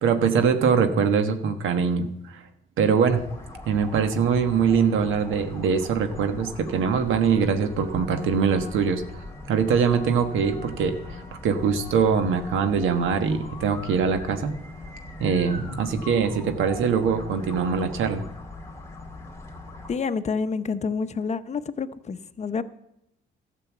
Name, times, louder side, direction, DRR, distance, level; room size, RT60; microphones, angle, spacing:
voice 1, 0.0-2.5 2.8-3.2 3.6-9.0 9.5-14.5 15.2-18.2, right 6 dB, 85° right, 8 dB, 1.3 m, -23 dB
sound 1, 3.1-20.0, left 2 dB, 15° left, 2.6 m, -41 dB
voice 2, 19.9-22.6, left 5 dB, 35° left, 10 dB, 0.8 m, -28 dB
12.5 x 6.9 x 7.3 m, 0.81 s
cardioid pair, 90°, 20 cm